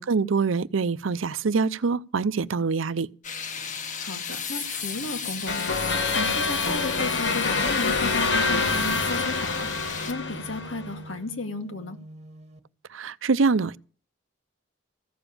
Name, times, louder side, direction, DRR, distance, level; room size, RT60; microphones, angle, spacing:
voice 1, 0.0-3.1 12.9-13.8, right 4 dB, 85° right, 0.6 m, -24 dB
sound 1, 3.2-10.1, left 6 dB, 40° left, 1.4 m, -34 dB
voice 2, 4.0-12.0, left 2 dB, 85° left, 2.2 m, -34 dB
sound 2, 5.5-10.9, left 3 dB, 65° left, 2.1 m, -26 dB
sound 3, 6.6-12.6, right 1 dB, 35° right, 1.5 m, -45 dB
15.0 x 7.0 x 8.7 m
head